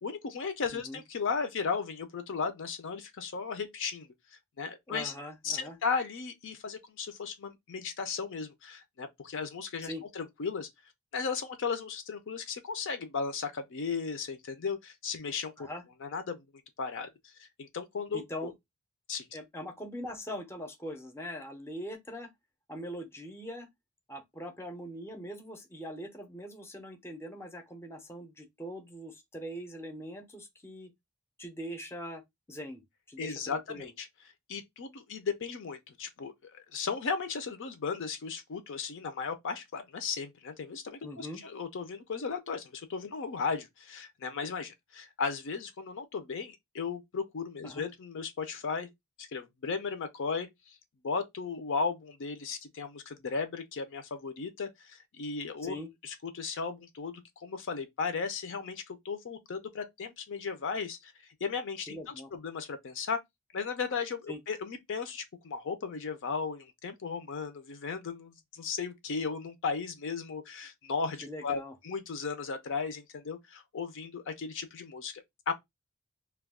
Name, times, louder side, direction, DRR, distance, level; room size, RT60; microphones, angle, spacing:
voice 1, 0.0-4.1 4.6-5.1 5.4-10.7 11.1-15.7 16.0-16.4 16.8-17.1 17.4-18.5 19.1-19.3 33.2-34.1 34.5-48.9 49.2-50.8 51.0-55.8 56.0-61.1 61.4-63.2 63.5-75.5, left 5 dB, 60° left, 0.5 m, -36 dB
voice 2, 4.9-5.8 9.8-10.0 15.6-15.8 18.1-18.5 19.3-22.3 22.7-23.7 24.1-30.9 31.4-32.2 32.5-32.8 33.1-33.9 41.0-41.4 47.6-47.8 55.6-55.9 61.9-62.3 64.3-64.4 71.2-71.7, equal, 10° left, 0.6 m, -42 dB
2.3 x 2.3 x 3.4 m
head